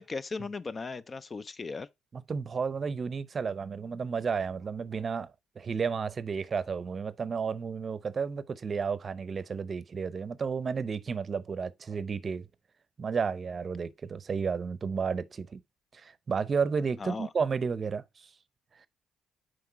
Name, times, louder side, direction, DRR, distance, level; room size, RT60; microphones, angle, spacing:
voice 1, 0.0-1.9 17.0-17.3, left 4 dB, 40° left, 0.5 m, -37 dB
voice 2, 2.1-5.3 5.6-12.4 13.0-15.6 15.9-18.3, right 5 dB, 45° right, 0.6 m, -32 dB
5.9 x 5.0 x 4.1 m
supercardioid pair, 65°, 0 cm